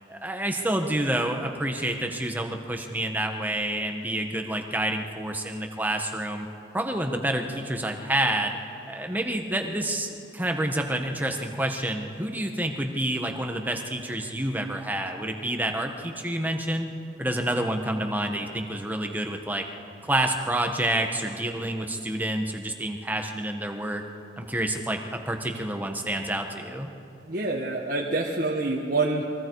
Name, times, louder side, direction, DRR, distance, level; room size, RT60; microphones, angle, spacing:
voice 1, 0.1-6.5 6.7-8.6 8.9-16.9 17.2-19.6 20.0-24.0 24.4-26.9, right 1 dB, 10° right, 4 dB, 1.3 m, -28 dB
voice 2, 27.3-29.3, right 3 dB, 50° right, -2 dB, 1.5 m, -26 dB
29.5 x 23.0 x 4.8 m, 2.8 s
head